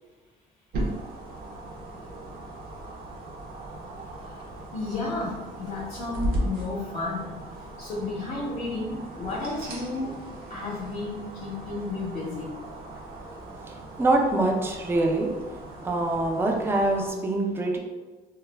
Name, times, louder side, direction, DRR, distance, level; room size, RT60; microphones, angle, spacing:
sound 1, 0.7-17.1, right 1 dB, 60° right, 0.6 m, -37 dB
voice 1, 4.7-7.3 7.8-10.1 10.5-12.5, left 3 dB, 40° left, -5 dB, 0.6 m, -32 dB
voice 2, 13.6-17.8, right 2 dB, 15° right, 1 dB, 0.4 m, -25 dB
2.2 x 2.0 x 3.2 m, 1.3 s
cardioid pair, 110°, 17 cm